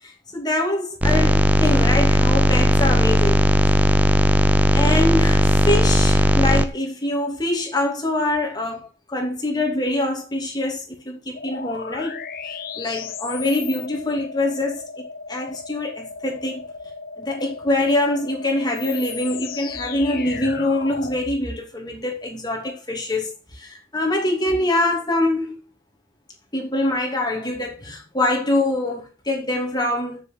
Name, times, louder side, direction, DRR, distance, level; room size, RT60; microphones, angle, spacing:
voice 1, 0.0-3.8 4.7-16.7 17.2-25.6 26.5-30.2, left 1 dB, 20° left, 2.8 m, -24 dB
sound 1, 1.0-6.7, equal, 10° right, 0.7 m, -17 dB
sound 2, 11.3-21.3, left 5 dB, 50° left, 0.9 m, -35 dB
7.8 x 6.8 x 6.1 m
head